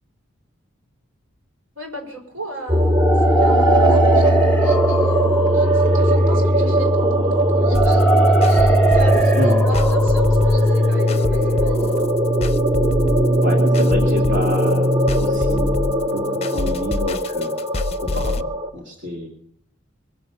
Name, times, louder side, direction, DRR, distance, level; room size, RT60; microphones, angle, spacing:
voice 1, 1.7-8.0 8.4-12.1, right 2 dB, 90° right, 1 dB, 6.0 m, -35 dB
sound 1, 2.7-18.7, equal, 20° right, 0.9 m, -18 dB
sound 2, 2.8-12.7, right 3 dB, 5° left, 1.1 m, -23 dB
sound 3, 7.7-18.4, left 2 dB, 30° left, 0.6 m, -27 dB
voice 2, 13.4-17.5 18.0-18.5 18.7-19.3, left 1 dB, 60° right, -1 dB, 2.5 m, -28 dB
22.5 x 7.8 x 7.0 m, 0.68 s
head